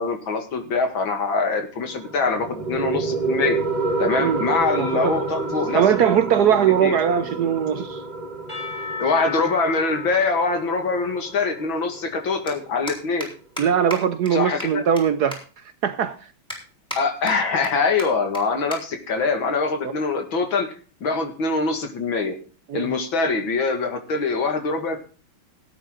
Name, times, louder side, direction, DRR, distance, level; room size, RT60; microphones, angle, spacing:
voice 1, 0.0-3.6 4.0-5.9 6.8-7.0 9.0-13.3 14.3-14.8 17.0-20.7 21.0-22.4 22.7-25.0, left 4 dB, 75° left, 2.7 m, -23 dB
sound 1, 1.8-12.9, right 3 dB, 25° right, 1.2 m, -29 dB
voice 2, 4.8-5.2 5.7-8.0 13.6-15.4 15.8-16.3 19.8-19.9 22.7-22.9, right 8 dB, 65° right, 1.0 m, -20 dB
Percussion / Church bell, 8.5-12.5, left 5 dB, 20° left, 6.1 m, -36 dB
sound 2, 12.5-12.6 12.9-13.3 13.6-13.7 13.9-14.0 14.3-14.4 14.6-15.0 15.3-15.4 15.9-16.0 16.5-17.0 17.3-17.7 18.0-18.1 18.3-18.4 18.7-18.8 19.1-19.4 20.1-20.4, equal, ahead, 4.3 m, -33 dB
17.0 x 9.2 x 3.8 m
omnidirectional pair, 2.2 m